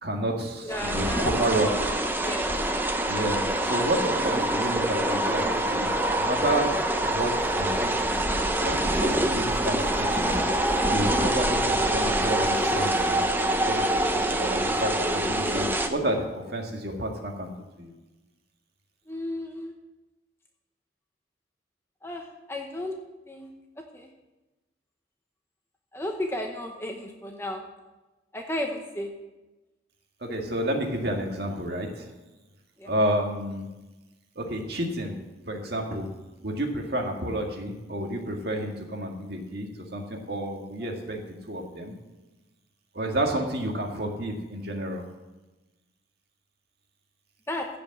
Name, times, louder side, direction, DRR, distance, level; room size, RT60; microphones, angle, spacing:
voice 1, 0.0-1.9 3.1-6.7 7.0-8.2 8.6-10.5 10.9-17.5 17.8-17.9 30.2-32.1 32.9-33.7 34.4-35.1 35.5-36.1 36.4-41.9 42.9-45.0, right 1 dB, 60° right, 2 dB, 2.0 m, -30 dB
voice 2, 0.6-1.3 1.6-1.9 2.2-2.6 19.1-19.7 22.0-23.0 23.3-23.5 23.9-24.1 25.9-27.6 28.3-29.1 32.8-32.9 40.8-40.9 47.5-47.7, left 1 dB, 15° left, 2 dB, 0.9 m, -33 dB
sound 1, 0.7-15.9, right 1 dB, 10° right, 0.7 m, -25 dB
15.5 x 5.2 x 7.8 m, 1.1 s
head